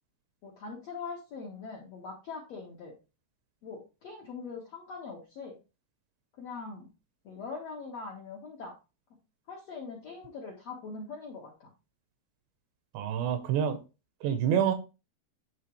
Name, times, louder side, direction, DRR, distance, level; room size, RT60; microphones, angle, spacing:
voice 1, 0.4-2.9 3.6-5.6 6.4-6.9 7.2-8.7 9.5-11.7, left 4 dB, 65° left, -3 dB, 1.6 m, -42 dB
voice 2, 12.9-13.8 14.2-14.7, right 8 dB, 80° right, 8 dB, 2.9 m, -27 dB
11.0 x 3.7 x 3.1 m, 0.30 s
omnidirectional pair, 5.3 m